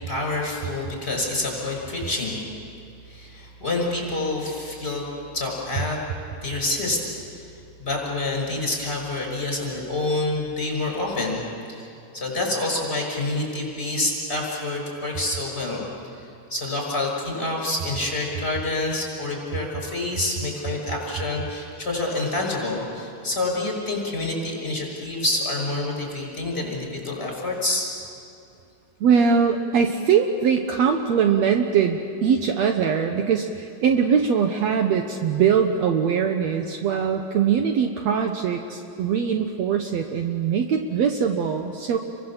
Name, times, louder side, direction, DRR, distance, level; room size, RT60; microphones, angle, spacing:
voice 1, 0.0-2.4 3.1-6.0 6.4-7.0 7.8-11.4 11.7-15.9 16.1-27.9, left 2 dB, 20° left, 0 dB, 6.2 m, -27 dB
voice 2, 29.0-42.0, right 7 dB, 70° right, 4 dB, 2.1 m, -22 dB
29.5 x 23.0 x 7.4 m, 2.5 s
omnidirectional pair, 3.4 m